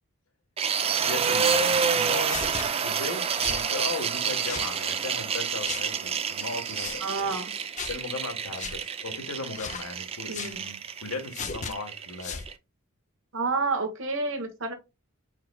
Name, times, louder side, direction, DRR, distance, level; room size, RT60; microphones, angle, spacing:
sound 1, 0.6-12.5, right 6 dB, 25° right, 0.4 m, -28 dB
voice 1, 1.0-7.4 7.9-12.4, left 2 dB, 75° left, 1.4 m, -37 dB
sound 2, 2.2-2.7 3.4-3.6 4.4-4.7 5.6-5.9 6.7-7.0 7.8-8.0 8.6-8.8 9.5-9.9 10.3-10.6 11.3-11.7 12.2-12.5, left 6 dB, 35° left, 0.5 m, -36 dB
voice 2, 7.0-7.5 10.3-10.7 13.3-14.7, right 3 dB, 60° right, 1.3 m, -29 dB
4.8 x 4.6 x 2.2 m
head